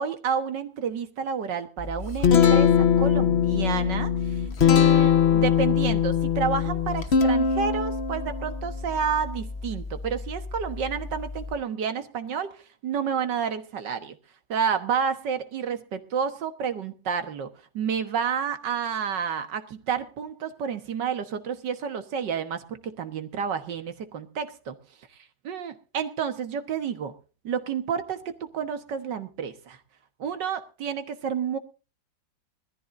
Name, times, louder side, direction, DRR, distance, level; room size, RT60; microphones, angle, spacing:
voice 1, 0.0-14.2 14.5-24.8 25.4-27.1 27.4-29.8 30.2-31.6, right 7 dB, 70° right, 9 dB, 1.9 m, -30 dB
Guitar, 1.8-11.5, left 7 dB, 40° left, 1.2 m, -23 dB
21.0 x 14.0 x 2.6 m, 0.34 s
omnidirectional pair, 2.0 m